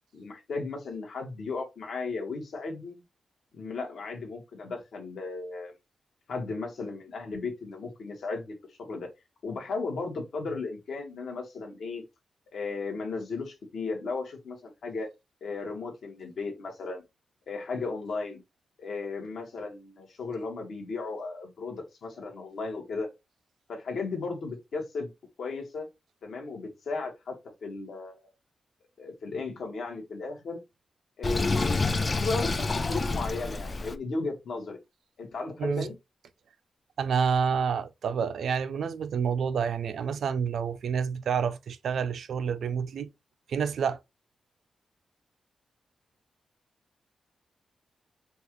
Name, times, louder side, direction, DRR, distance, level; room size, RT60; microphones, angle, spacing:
voice 1, 0.1-3.0 3.5-5.7 6.3-8.5 8.9-9.1 9.4-12.0 12.5-15.1 15.4-17.0 17.5-18.4 18.8-23.1 23.7-25.1 25.4-25.9 26.2-27.3 27.6-28.1 29.0-30.6 31.2-34.8 35.2-35.9, left 3 dB, 70° left, 1.4 m, -35 dB
Sink (filling or washing), 31.2-34.0, left 3 dB, 25° left, 0.3 m, -28 dB
voice 2, 37.0-43.1 43.5-44.0, right 6 dB, 75° right, 0.4 m, -28 dB
5.2 x 2.4 x 3.0 m
wide cardioid pair, 170°, 0 cm